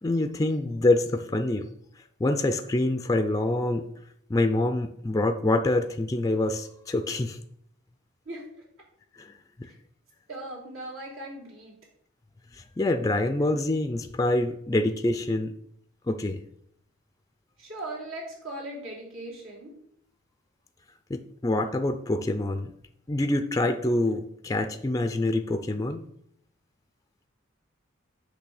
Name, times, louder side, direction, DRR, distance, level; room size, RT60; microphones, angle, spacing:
voice 1, 0.0-1.7 2.2-3.9 4.3-7.4 9.2-9.3 9.6-9.7 12.5-15.5 16.1-16.4 21.1-22.7 23.1-26.1, left 2 dB, 15° left, 7 dB, 0.4 m, -26 dB
voice 2, 10.3-11.7 17.6-19.8, right 1 dB, 80° right, -3 dB, 2.7 m, -38 dB
8.3 x 3.3 x 6.4 m, 0.71 s
head